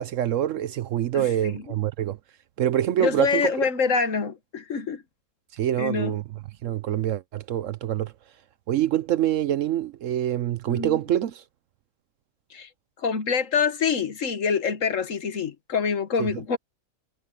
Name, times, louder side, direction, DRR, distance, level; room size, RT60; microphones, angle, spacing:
voice 1, 0.0-2.2 2.6-3.4 5.5-6.2 6.6-8.1 8.7-11.4 16.2-16.3, right 11 dB, 65° right, 0.9 m, -25 dB
voice 2, 1.1-1.6 3.0-5.0 5.8-6.1 10.7-11.0 12.5-12.7 13.0-16.6, left 5 dB, 60° left, 1.6 m, -26 dB
omnidirectional pair, 1.5 m